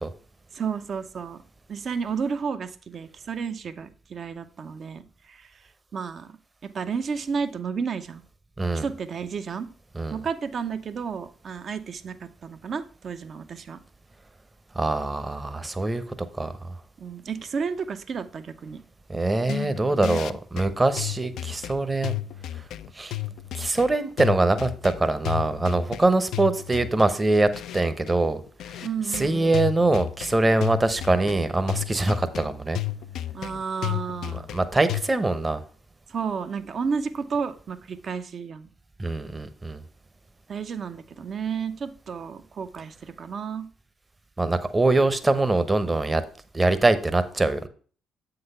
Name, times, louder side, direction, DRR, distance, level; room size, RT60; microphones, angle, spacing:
voice 1, 0.5-1.4 1.7-5.5 5.9-6.4 6.6-8.2 8.7-9.7 10.1-13.8 17.0-18.8 28.8-29.6 33.3-34.5 36.1-38.7 40.5-43.7, right 6 dB, 50° right, 10 dB, 0.7 m, -32 dB
voice 2, 14.8-16.0 16.4-16.7 19.1-22.2 23.0-23.2 23.5-28.4 29.1-32.8 34.5-35.6 39.0-39.8 44.4-46.2 46.5-47.7, right 2 dB, 25° right, 11 dB, 0.9 m, -23 dB
sound 1, 19.4-35.0, left 14 dB, 70° left, 0.3 m, -33 dB
7.7 x 4.0 x 5.5 m, 0.42 s
hypercardioid pair, 50°, 0 cm